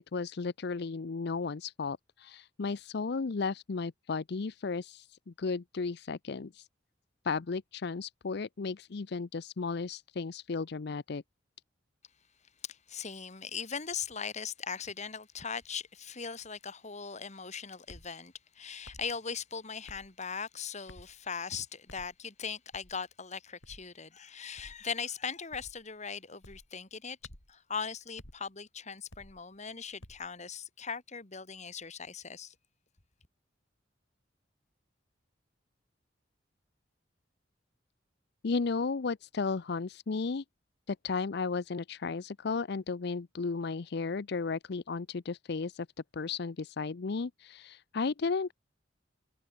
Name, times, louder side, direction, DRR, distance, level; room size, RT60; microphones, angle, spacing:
voice 1, 0.0-6.7 7.2-11.2 38.4-40.4 40.9-45.9 46.1-48.5, left 4 dB, 60° left, 0.6 m, -34 dB
voice 2, 12.6-27.2 27.5-32.5, left 6 dB, 40° left, 2.3 m, -39 dB
sound 1, 17.9-18.1 18.8-19.1 19.9-20.1 20.9-21.2 21.9-22.1 22.7-23.0 23.6-23.9 24.6-24.8 25.5-25.8 26.4-26.7 27.2-27.5 28.2-28.4 29.1-29.4 30.0-30.3, left 1 dB, 90° left, 5.9 m, -52 dB
head